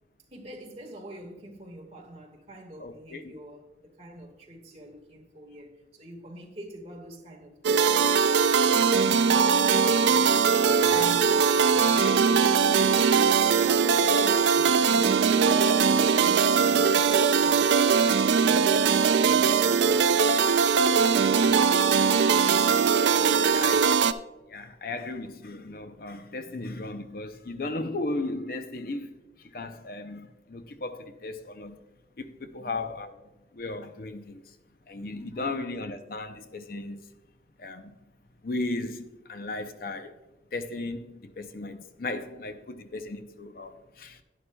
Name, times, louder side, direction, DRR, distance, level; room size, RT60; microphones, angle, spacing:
voice 1, 0.3-10.2 10.6-13.0 13.5-15.5 16.2-17.8 18.1-20.4 21.2-21.7 22.4-22.8 23.4-23.9 32.6-32.8 35.1-35.6, right 1 dB, 35° right, 1.7 m, -44 dB
voice 2, 2.8-3.3 10.8-11.1 15.8-16.0 21.3-21.6 22.7-22.9 23.4-24.0 24.5-31.8 32.2-33.1 33.5-34.6 34.9-37.0 37.6-37.9 38.4-40.1 40.5-44.2, left 2 dB, 50° left, 0.6 m, -36 dB
sound 1, 7.6-24.1, right 6 dB, 80° right, 0.4 m, -21 dB
11.0 x 10.0 x 2.2 m
head